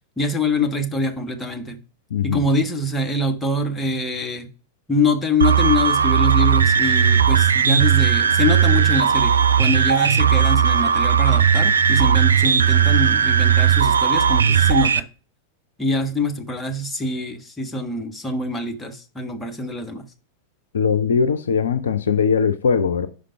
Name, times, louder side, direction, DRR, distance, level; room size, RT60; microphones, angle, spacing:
voice 1, 0.2-1.8 2.2-4.5 4.9-15.1 15.8-20.1, left 2 dB, 10° left, 0.9 m, -24 dB
voice 2, 2.1-2.4 20.7-23.1, left 6 dB, 65° left, 0.5 m, -20 dB
sound 1, 5.4-15.0, right 7 dB, 70° right, 0.3 m, -17 dB
5.0 x 5.0 x 5.6 m
figure-of-eight pair, 90°, 0 cm